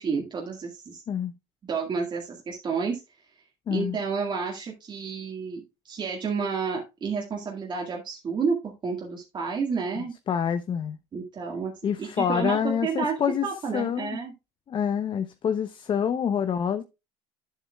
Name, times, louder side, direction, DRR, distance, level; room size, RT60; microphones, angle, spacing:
voice 1, 0.0-1.0 1.6-3.0 3.7-10.1 11.1-11.7 12.0-13.2 13.4-14.3, right 5 dB, 35° right, 2.0 m, -30 dB
voice 2, 3.7-4.0 9.9-11.0 11.8-13.5 13.7-14.2 14.7-16.8, left 8 dB, 35° left, 0.8 m, -27 dB
10.0 x 7.7 x 2.4 m
hypercardioid pair, 90°, 14 cm